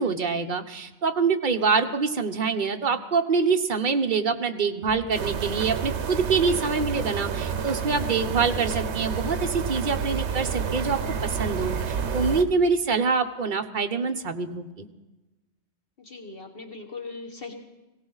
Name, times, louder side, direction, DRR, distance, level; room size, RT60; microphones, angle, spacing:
voice 1, 0.0-14.9, right 5 dB, 45° right, 6 dB, 1.0 m, -25 dB
voice 2, 1.7-2.0 16.0-17.5, left 3 dB, 55° left, 3 dB, 1.4 m, -40 dB
sound 1, 4.9-12.5, equal, 5° right, 6.8 m, -44 dB
sound 2, 5.1-12.4, right 6 dB, 70° right, 1.1 m, -29 dB
18.5 x 17.0 x 4.0 m, 1.1 s
omnidirectional pair, 1.2 m